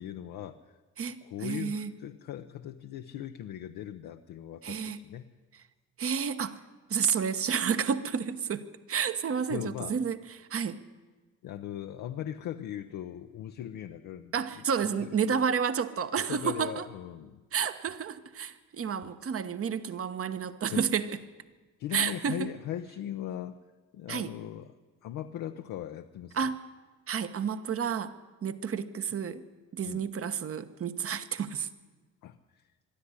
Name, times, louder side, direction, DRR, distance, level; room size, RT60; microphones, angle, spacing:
voice 1, 0.0-0.8 1.2-5.2 9.5-10.0 11.4-14.6 15.0-15.4 16.3-17.4 20.7-20.9 21.8-23.6 23.9-24.8 25.0-26.5 29.8-30.0 32.2-32.6, left 11 dB, 85° left, 6 dB, 0.8 m, -39 dB
voice 2, 1.0-1.9 4.6-5.0 6.0-6.6 6.9-10.8 14.3-16.8 17.5-21.1 21.9-22.5 24.1-24.3 26.3-26.6 27.1-28.1 28.4-29.4 29.7-31.7, right 7 dB, 50° right, 11 dB, 1.2 m, -30 dB
22.0 x 13.0 x 9.8 m, 1.3 s
cardioid pair, 90°, 30 cm